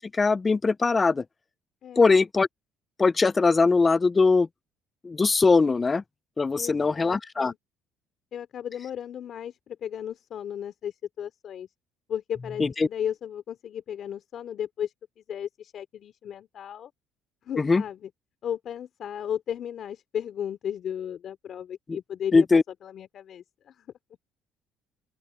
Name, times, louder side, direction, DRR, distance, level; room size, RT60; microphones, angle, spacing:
voice 1, 0.1-1.2 2.0-2.5 3.0-4.5 5.0-6.0 6.4-7.5 12.6-12.9 17.6-17.8 21.9-22.0 22.3-22.6, left 4 dB, 20° left, 0.4 m, -21 dB
voice 2, 1.8-2.2 6.5-7.6 8.3-11.7 12.1-16.9 17.4-18.1 18.4-23.9, left 9 dB, 50° left, 3.6 m, -35 dB
open air
cardioid pair, 115°, 0 cm